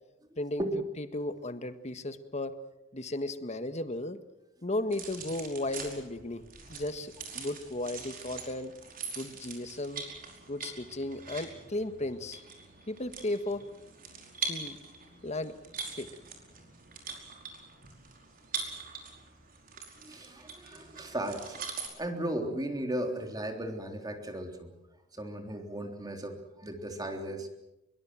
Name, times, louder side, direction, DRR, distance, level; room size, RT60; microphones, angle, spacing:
voice 1, 1.0-2.5 2.9-4.2 4.6-6.4 6.7-8.7 9.2-10.0 10.5-12.4 12.9-13.6 14.5-14.8 15.2-15.6 16.0-16.1, left 1 dB, 35° left, 10 dB, 1.6 m, -35 dB
sound 1, 4.9-21.9, right 5 dB, 45° right, 5.1 m, -43 dB
voice 2, 20.0-24.7 25.1-27.5, right 1 dB, 20° right, 4 dB, 3.5 m, -36 dB
24.5 x 23.0 x 7.7 m, 0.93 s
head